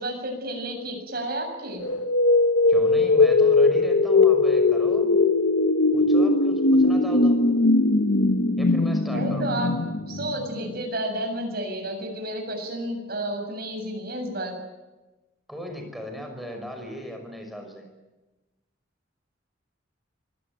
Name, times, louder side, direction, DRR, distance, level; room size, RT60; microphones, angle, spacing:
voice 1, 0.0-1.8 9.1-9.8 10.1-14.6, right 1 dB, 55° right, 5 dB, 7.4 m, -31 dB
sound 1, 1.8-10.7, left 3 dB, 85° left, 1.1 m, -20 dB
voice 2, 2.7-5.2 5.9-7.4 8.6-9.5 15.5-17.9, equal, ahead, 3 dB, 5.8 m, -37 dB
25.0 x 19.0 x 9.2 m, 1.1 s
head